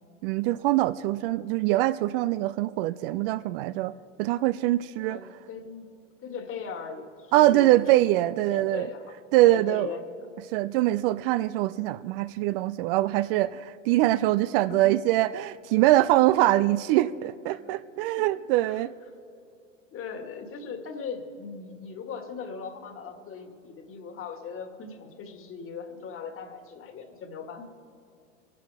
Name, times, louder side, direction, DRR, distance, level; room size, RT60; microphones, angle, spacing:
voice 1, 0.2-3.9 4.2-5.2 7.3-8.9 9.3-9.9 10.5-18.9, right 16 dB, 50° right, 16 dB, 0.5 m, -23 dB
voice 2, 5.0-5.9 6.2-7.8 8.3-9.2 9.4-10.3 14.7-14.9 17.5-17.6 18.1-18.2 18.6-18.8 19.9-27.6, left 5 dB, 35° left, 6 dB, 2.0 m, -39 dB
26.5 x 11.5 x 3.5 m, 2.5 s
hypercardioid pair, 85°, 37 cm